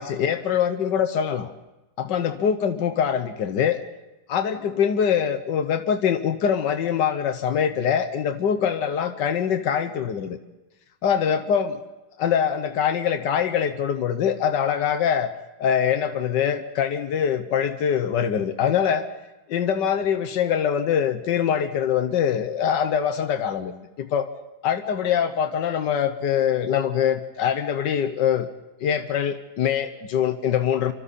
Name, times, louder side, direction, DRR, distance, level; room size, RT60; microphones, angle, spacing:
voice 1, 0.0-1.5 2.0-3.8 4.3-10.4 11.0-11.8 12.2-15.3 15.6-19.1 19.5-24.3 24.6-28.5 28.8-30.9, left 8 dB, 85° left, 9 dB, 1.6 m, -23 dB
28.5 x 25.5 x 4.2 m, 1.0 s
omnidirectional pair, 1.9 m